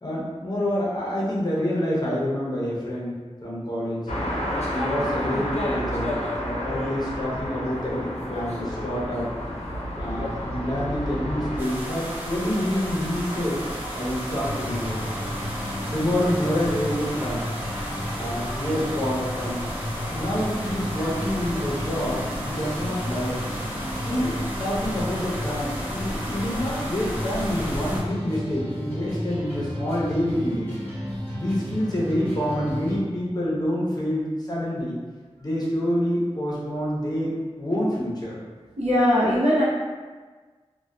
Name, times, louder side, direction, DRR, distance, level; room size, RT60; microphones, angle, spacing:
voice 1, 0.0-3.1 3.4-4.1 4.7-9.3 10.0-13.6 13.9-15.1 15.9-17.5 18.1-19.6 20.1-23.4 24.1-30.7 31.3-35.0 35.4-38.4, equal, 40° left, -6 dB, 0.7 m, -27 dB
sound 1, 4.1-11.6, equal, 80° left, 0.5 m, -30 dB
sound 2, 11.6-28.0, equal, 20° right, 0.6 m, -33 dB
sound 3, 14.4-33.0, equal, 15° left, 1.0 m, -33 dB
voice 2, 38.8-39.6, equal, 75° right, -8 dB, 0.8 m, -21 dB
2.6 x 2.1 x 2.2 m, 1.4 s
wide cardioid pair, 50°, 11 cm